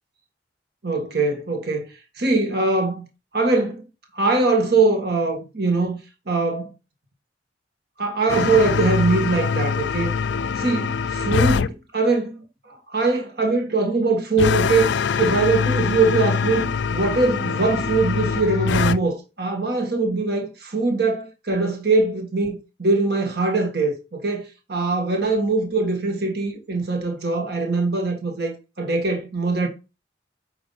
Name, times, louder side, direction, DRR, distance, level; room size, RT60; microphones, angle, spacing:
voice 1, 0.8-1.9 2.2-3.1 3.3-3.8 4.1-6.0 6.3-6.7 8.0-10.1 10.6-14.9 15.2-29.7, right 3 dB, 55° right, 1.6 m, -22 dB
sound 1, 8.3-11.7 14.4-19.0, left 6 dB, 70° left, 0.4 m, -23 dB
9.1 x 3.0 x 5.5 m
head